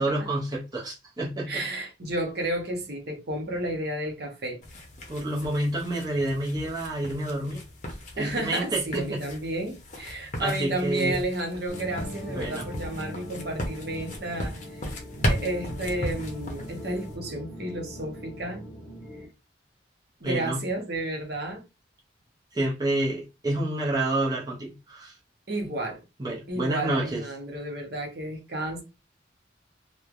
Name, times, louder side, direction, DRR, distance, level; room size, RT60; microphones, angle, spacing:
voice 1, 0.0-1.6 5.1-7.6 7.9-9.2 10.4-11.2 12.4-12.7 20.2-20.6 22.5-25.2 25.6-25.7 26.2-27.3, right 1 dB, 20° right, 0.6 m, -29 dB
voice 2, 1.5-4.6 8.2-15.0 15.3-18.7 20.2-21.6 25.5-26.0 26.5-28.8, right 1 dB, 55° right, 0.8 m, -32 dB
sound 1, 4.6-17.2, equal, 40° left, 0.7 m, -36 dB
sound 2, 11.7-19.3, equal, 5° left, 1.5 m, -40 dB
3.0 x 2.1 x 2.4 m
head